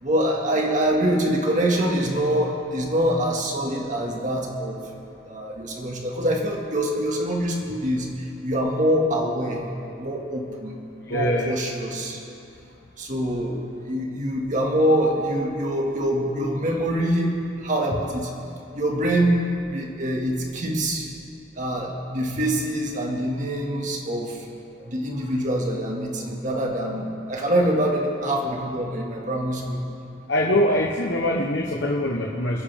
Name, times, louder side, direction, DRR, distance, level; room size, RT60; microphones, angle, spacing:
voice 1, 0.0-4.8 5.2-9.6 10.0-10.8 11.1-12.2 13.0-18.3 18.7-19.4 19.6-21.1 21.6-24.5 24.8-29.8, right 1 dB, 40° right, -1 dB, 2.0 m, -25 dB
voice 2, 11.1-11.5 30.3-32.6, left 1 dB, 60° left, -1 dB, 1.2 m, -23 dB
29.0 x 10.0 x 3.6 m, 2.8 s
head